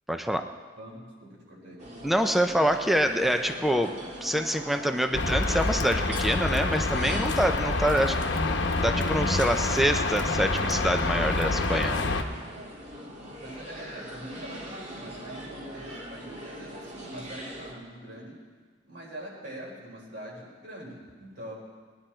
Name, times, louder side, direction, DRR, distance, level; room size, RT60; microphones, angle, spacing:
voice 1, 0.1-0.5 2.0-8.2 8.8-12.0, equal, ahead, 6 dB, 0.6 m, -26 dB
voice 2, 0.8-1.8 13.4-18.4 18.8-21.5, equal, 65° right, -4 dB, 4.8 m, -43 dB
sound 1, 1.8-17.7, right 1 dB, 40° right, 1.9 m, -42 dB
sound 2, 5.1-12.2, left 2 dB, 70° left, 1.0 m, -27 dB
21.0 x 10.5 x 4.4 m, 1.5 s
head